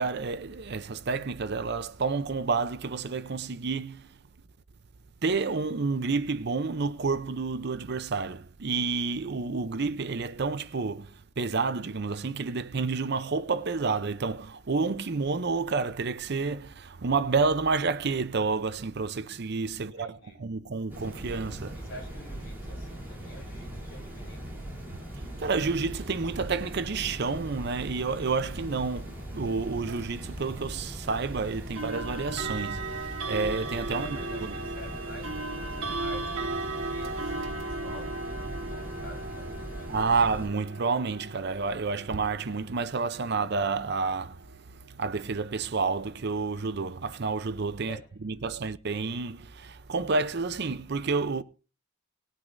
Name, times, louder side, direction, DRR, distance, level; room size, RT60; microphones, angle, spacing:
voice 1, 0.0-4.2 5.2-21.8 25.2-34.5 39.9-48.0 48.2-51.4, right 4 dB, 50° right, 0.6 m, -30 dB
voice 2, 19.8-20.5 21.7-24.8 34.0-39.9 47.8-48.2, left 1 dB, 50° left, 5.8 m, -49 dB
sound 1, 20.9-40.5, right 1 dB, 10° right, 3.3 m, -40 dB
sound 2, 29.9-30.1 31.8-44.6, right 3 dB, 70° right, 1.7 m, -37 dB
19.5 x 9.1 x 2.6 m
head